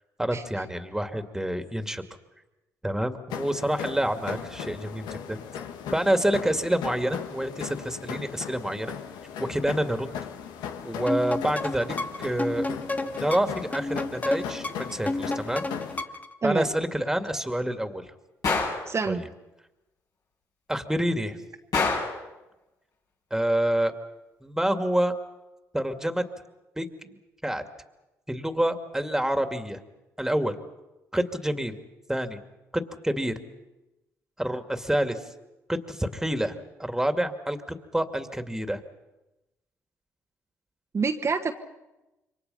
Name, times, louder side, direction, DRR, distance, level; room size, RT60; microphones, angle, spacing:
voice 1, 0.2-2.0 2.8-5.4 5.9-8.9 9.5-10.1 10.8-12.6 13.2-15.7 16.4-18.0 19.1-19.2 20.7-21.4 23.3-23.9 24.4-25.1 25.7-26.2 26.8-26.9 27.4-27.6 28.3-29.8 30.2-30.6 31.1-31.8 32.1-32.4 32.7-33.3 34.4-35.2 35.7-38.8, right 1 dB, 5° right, 7 dB, 2.5 m, -27 dB
sound 1, 3.3-16.0, left 8 dB, 80° left, 1.6 m, -38 dB
sound 2, 11.1-16.3, left 2 dB, 20° left, 1.5 m, -31 dB
Gunshot gunfire, 18.4-18.9 21.7-22.2, left 4 dB, 60° left, 7.7 m, -25 dB
voice 2, 18.9-19.3 40.9-41.5, right 5 dB, 40° right, 3 dB, 1.5 m, -27 dB
27.5 x 24.0 x 5.7 m, 1.0 s
hypercardioid pair, 55°, 7 cm